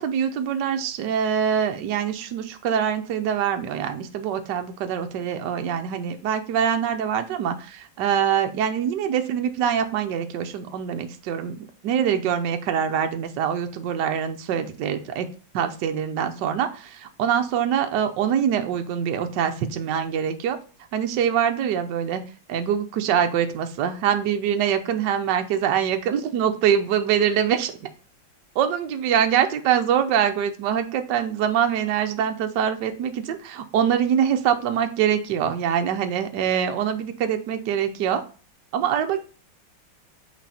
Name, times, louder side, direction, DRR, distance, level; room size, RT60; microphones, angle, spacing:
voice 1, 0.0-15.3 15.5-20.6 20.9-22.2 22.5-27.9 28.5-38.2 38.7-39.2, right 8 dB, 70° right, 6 dB, 1.3 m, -24 dB
6.3 x 4.1 x 4.1 m, 0.37 s
omnidirectional pair, 2.1 m